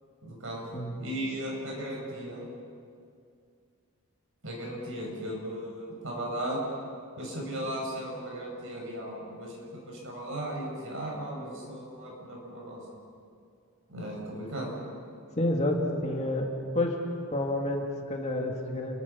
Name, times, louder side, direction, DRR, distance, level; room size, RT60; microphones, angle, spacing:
voice 1, 0.2-0.6 1.0-2.5 4.4-6.6 7.2-12.8 13.9-14.7, right 1 dB, 60° right, -1 dB, 7.1 m, -36 dB
voice 2, 15.4-16.5 16.7-17.0 17.3-19.0, left 1 dB, 30° left, 1 dB, 2.5 m, -29 dB
29.5 x 23.0 x 5.9 m, 2.3 s
head